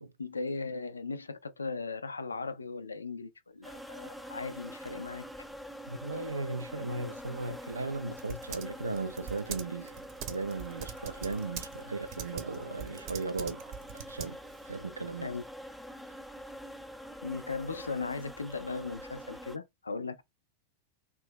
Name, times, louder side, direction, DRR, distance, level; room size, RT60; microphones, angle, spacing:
voice 1, 0.2-5.3 15.2-15.4 17.2-20.2, left 4 dB, 75° left, 0.3 m, -37 dB
sound 1, 3.6-19.6, equal, ahead, 0.4 m, -45 dB
voice 2, 5.9-9.9 10.3-13.6 13.9-14.4 14.6-15.3, right 3 dB, 80° right, 0.3 m, -37 dB
Typing, 7.3-14.7, right 8 dB, 40° right, 0.7 m, -44 dB
3.0 x 2.8 x 3.3 m
figure-of-eight pair, 90°, 0 cm